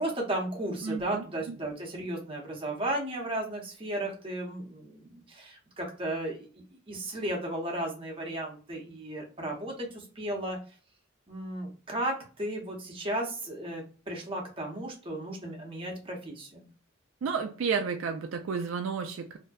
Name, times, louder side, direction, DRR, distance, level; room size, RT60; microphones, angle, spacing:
voice 1, 0.0-10.6 11.3-16.7, right 1 dB, 25° right, -1 dB, 0.8 m, -35 dB
voice 2, 0.8-1.6 17.2-19.4, right 5 dB, 70° right, 5 dB, 0.3 m, -32 dB
2.6 x 2.2 x 2.2 m, 0.39 s
head